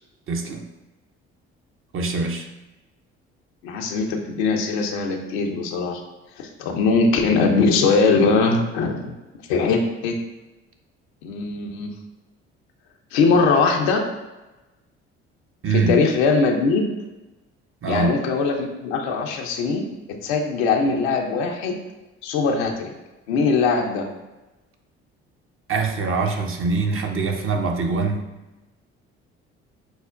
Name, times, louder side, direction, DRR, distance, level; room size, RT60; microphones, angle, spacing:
voice 1, 0.3-0.6 1.9-2.5 15.6-16.1 17.8-18.2 25.7-28.3, right 4 dB, 45° right, 4 dB, 0.6 m, -23 dB
voice 2, 3.6-6.0 6.4-9.1 9.5-10.1 11.2-11.9 13.1-14.0 15.7-16.9 17.9-19.9 20.2-21.8 22.2-22.9 23.3-24.1, left 4 dB, 80° left, 2 dB, 0.6 m, -21 dB
6.0 x 2.1 x 2.4 m, 1.1 s
hypercardioid pair, 55°, 31 cm